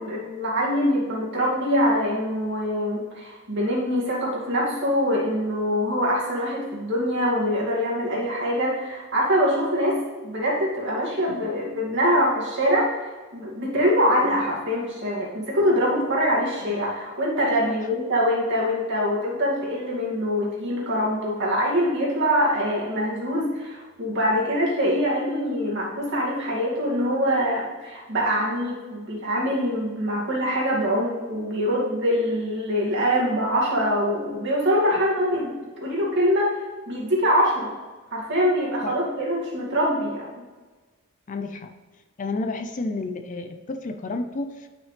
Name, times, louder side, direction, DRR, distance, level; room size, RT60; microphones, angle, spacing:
voice 1, 0.0-10.0 10.2-12.9 13.3-35.5 35.8-36.6 36.9-37.7 38.1-40.3, equal, 55° right, -4 dB, 2.3 m, -24 dB
voice 2, 41.3-41.7 42.2-44.7, left 2 dB, 35° left, 7 dB, 0.4 m, -31 dB
9.3 x 6.1 x 3.3 m, 1.3 s
head